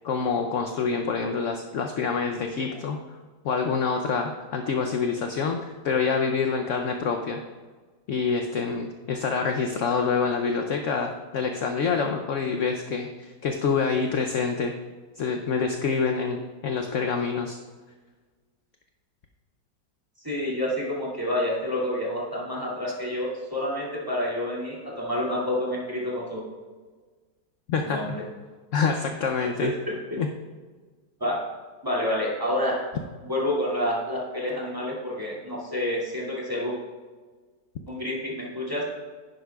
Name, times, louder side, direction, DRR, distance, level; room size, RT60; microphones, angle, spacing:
voice 1, 0.0-3.0 3.4-7.4 8.1-14.7 15.2-17.6 27.7-28.0 28.7-29.7 30.2-30.3, left 5 dB, 65° left, 4 dB, 0.8 m, -26 dB
voice 2, 20.2-26.4 27.8-28.2 29.6-30.2 31.2-31.4 31.8-32.9 33.3-36.8 37.9-38.8, left 1 dB, 10° right, -5 dB, 2.2 m, -28 dB
11.0 x 10.0 x 2.3 m, 1.4 s
omnidirectional pair, 2.0 m